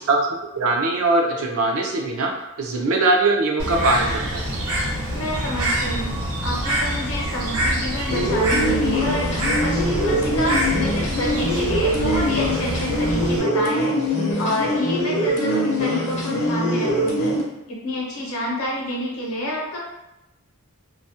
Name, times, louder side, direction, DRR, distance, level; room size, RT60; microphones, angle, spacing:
voice 1, 0.5-2.3 2.6-4.4, right 2 dB, 65° right, 1 dB, 0.4 m, -21 dB
Bird, 3.6-13.4, equal, 85° right, 0.8 m, -26 dB
voice 2, 5.1-6.1 6.4-14.0 14.4-17.4 17.7-19.8, left 1 dB, 70° left, -2 dB, 0.7 m, -28 dB
sound 1, 8.1-17.4, equal, 30° left, 0.4 m, -23 dB
2.3 x 2.0 x 2.6 m, 0.93 s
head